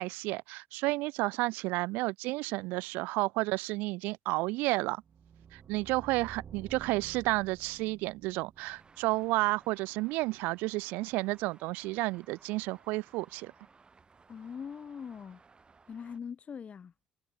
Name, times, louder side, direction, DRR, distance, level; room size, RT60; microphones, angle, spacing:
voice 1, 0.0-5.0 5.5-13.5, right 22 dB, 85° right, 0.3 m, -31 dB
sound 1, 5.0-10.0, right 7 dB, 50° right, 2.2 m, -52 dB
Traffic noise roadway noise, 8.6-16.2, right 4 dB, 30° right, 2.3 m, -61 dB
voice 2, 14.3-15.4 15.9-16.9, left 7 dB, 45° left, 0.8 m, -42 dB
supercardioid pair, 70°, 3 cm